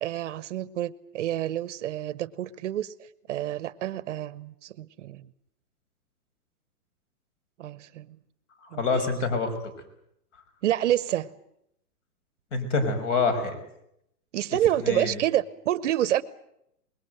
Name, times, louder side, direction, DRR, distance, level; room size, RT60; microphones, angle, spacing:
voice 1, 0.0-2.9 3.3-5.2 7.6-8.1 8.7-8.8 10.6-11.3 14.3-16.2, right 12 dB, 50° right, 18 dB, 1.0 m, -28 dB
voice 2, 8.8-9.5 12.5-13.6 14.8-15.2, left 4 dB, 50° left, 10 dB, 6.0 m, -26 dB
25.0 x 21.5 x 7.9 m, 0.77 s
hypercardioid pair, 155°, 48 cm